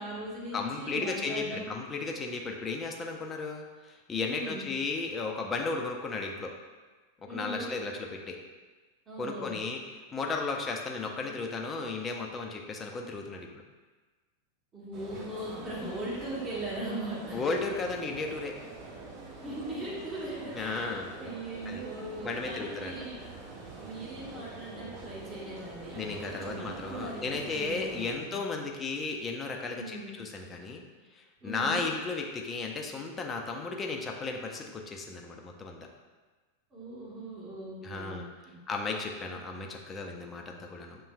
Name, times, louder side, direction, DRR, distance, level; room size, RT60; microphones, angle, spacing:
voice 1, 0.0-1.7 4.2-4.7 7.3-7.7 9.1-9.6 14.7-17.4 19.4-23.2 23.8-28.4 29.8-30.2 31.4-31.9 36.7-38.6, right 1 dB, 20° right, -6 dB, 1.4 m, -39 dB
voice 2, 0.5-6.5 7.3-8.4 9.2-9.8 10.1-13.6 17.3-18.5 20.5-21.2 21.7-21.8 22.2-23.0 25.9-30.9 31.1-35.8 37.8-38.3 38.7-41.0, left 3 dB, 20° left, 1 dB, 0.5 m, -34 dB
sound 1, 14.9-28.2, right 3 dB, 40° right, 0.9 m, -45 dB
6.8 x 3.0 x 2.3 m, 1.3 s
figure-of-eight pair, 90°, 0 cm